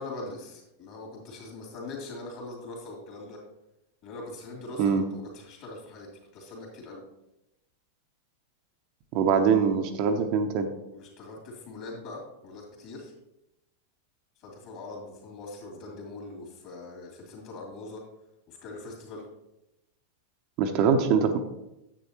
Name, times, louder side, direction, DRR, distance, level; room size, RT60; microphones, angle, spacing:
voice 1, 0.0-3.4 4.0-6.1 6.3-7.0 10.9-13.1 14.4-18.0 18.5-19.2, left 2 dB, 40° left, -1 dB, 2.9 m, -42 dB
voice 2, 9.1-10.7 20.6-21.4, right 6 dB, 45° right, 5 dB, 0.8 m, -23 dB
9.8 x 7.9 x 3.0 m, 0.92 s
figure-of-eight pair, 90°, 0 cm